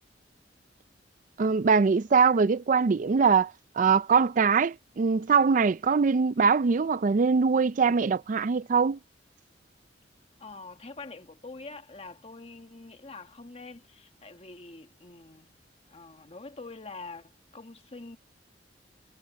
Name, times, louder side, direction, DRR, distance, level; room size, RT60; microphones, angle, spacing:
voice 1, 1.4-9.0, right 5 dB, 45° right, 0.4 m, -23 dB
voice 2, 10.4-15.6 15.9-18.2, left 3 dB, 35° left, 1.5 m, -45 dB
head